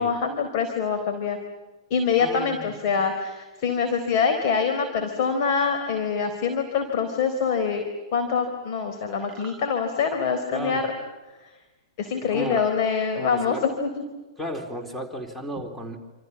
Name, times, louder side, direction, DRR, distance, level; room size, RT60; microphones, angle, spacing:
voice 1, 0.0-1.4 1.9-7.9 8.1-10.9 11.4-11.5 12.0-13.9, left 6 dB, 45° left, 5 dB, 4.0 m, -25 dB
voice 2, 2.2-3.0 10.5-10.8 12.2-12.7 13.2-13.7 14.4-16.0, right 1 dB, ahead, 5 dB, 4.0 m, -34 dB
sound 1, 9.2-9.6 12.4-12.7, right 5 dB, 20° right, 5.6 m, -46 dB
28.5 x 28.0 x 7.4 m, 1.2 s
figure-of-eight pair, 105°, 2 cm